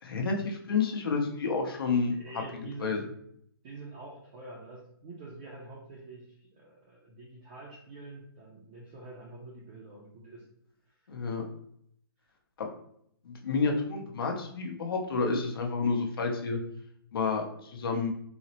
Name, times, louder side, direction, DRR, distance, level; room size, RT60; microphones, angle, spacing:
voice 1, 0.0-2.2 2.8-3.0 11.1-11.4 12.6-12.7 13.2-16.6 17.1-18.1, left 4 dB, 65° left, 2 dB, 0.8 m, -30 dB
voice 2, 2.0-3.1 3.6-10.5, right 2 dB, 20° right, -5 dB, 0.5 m, -46 dB
4.0 x 2.0 x 2.8 m, 0.69 s
hypercardioid pair, 165°, 13 cm